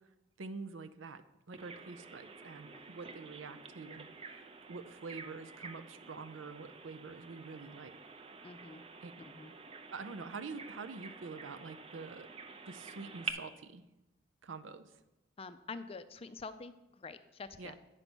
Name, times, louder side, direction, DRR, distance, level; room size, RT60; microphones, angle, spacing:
voice 1, 0.4-1.2 1.5-8.0 9.0-9.1 9.9-12.3 12.7-13.8 14.4-14.9 17.6-17.7, right 4 dB, 85° right, 11 dB, 0.6 m, -46 dB
Bird vocalization bird call bird song, 1.5-13.3, right 4 dB, 30° right, 0.5 m, -49 dB
voice 2, 8.4-8.8 9.2-9.5 15.4-17.7, left 4 dB, 30° left, 11 dB, 0.4 m, -47 dB
9.0 x 5.4 x 6.1 m, 0.97 s
head